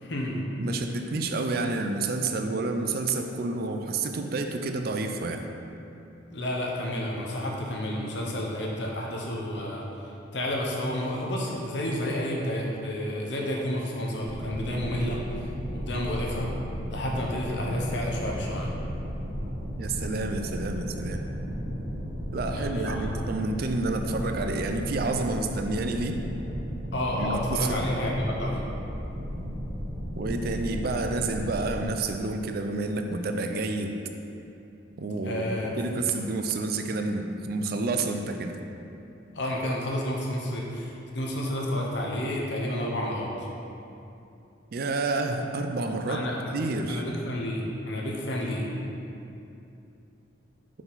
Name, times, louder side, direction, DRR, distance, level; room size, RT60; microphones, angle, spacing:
voice 1, 0.0-0.4 6.3-9.8 10.3-15.5 15.7-16.5 16.9-18.7 22.5-23.1 26.9-28.6 35.2-35.7 39.3-43.5 46.1-46.5 46.9-48.6, left 1 dB, 65° left, -2 dB, 0.9 m, -30 dB
voice 2, 0.6-5.5 19.8-21.2 22.3-26.2 27.1-27.8 30.2-34.0 35.0-38.6 44.7-47.0, right 3 dB, 50° right, 5 dB, 0.4 m, -29 dB
sound 1, 14.2-31.8, equal, 85° right, 1.0 m, -34 dB
5.7 x 4.6 x 4.0 m, 2.8 s
head